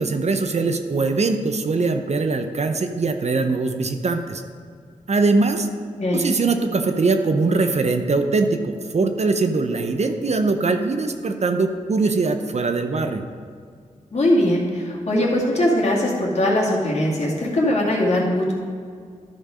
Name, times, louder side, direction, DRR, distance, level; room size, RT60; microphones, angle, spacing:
voice 1, 0.0-4.4 5.1-5.7 6.1-13.3, right 3 dB, 55° right, 6 dB, 0.7 m, -22 dB
voice 2, 14.1-18.5, left 1 dB, 55° left, -3 dB, 2.1 m, -20 dB
11.5 x 4.5 x 5.0 m, 2.1 s
cardioid pair, 50°, 14 cm